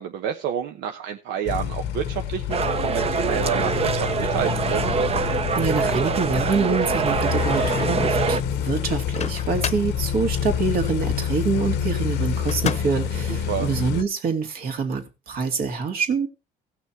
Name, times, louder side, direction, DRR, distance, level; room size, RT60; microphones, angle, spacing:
voice 1, 0.0-4.9 13.3-13.7, right 9 dB, 85° right, 5 dB, 1.0 m, -29 dB
sound 1, 1.5-14.0, left 8 dB, 90° left, 1.1 m, -27 dB
sound 2, 2.5-8.4, right 5 dB, 35° right, 0.9 m, -24 dB
voice 2, 5.5-16.3, right 5 dB, 60° right, 5 dB, 2.5 m, -26 dB
Microwave oven, 8.9-10.0 12.5-13.1, left 8 dB, 40° left, 0.9 m, -30 dB
17.0 x 6.2 x 4.5 m, 0.29 s
cardioid pair, 110°, 17 cm